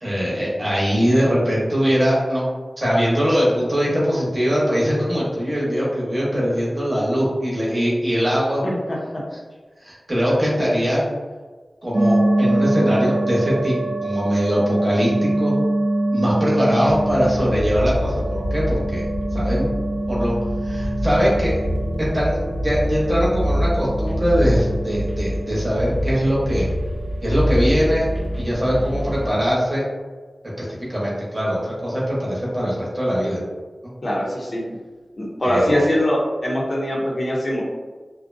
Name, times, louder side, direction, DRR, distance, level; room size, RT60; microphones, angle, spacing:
voice 1, 0.0-2.5 2.8-8.6 9.8-11.1 11.8-15.5 16.1-19.1 19.3-19.7 20.1-20.4 20.6-21.7 22.0-26.7 27.2-28.1 28.4-29.8 30.6-33.4 35.4-35.8, equal, 35° right, -7 dB, 0.9 m, -21 dB
voice 2, 8.6-9.0 34.0-34.6 35.2-37.6, equal, 50° left, -4 dB, 0.6 m, -22 dB
sound 1, 11.9-29.2, right 1 dB, 60° right, 0.3 m, -25 dB
sound 2, 16.8-29.4, equal, 5° left, 0.5 m, -26 dB
2.5 x 2.1 x 2.5 m, 1.4 s
wide cardioid pair, 85°, 0 cm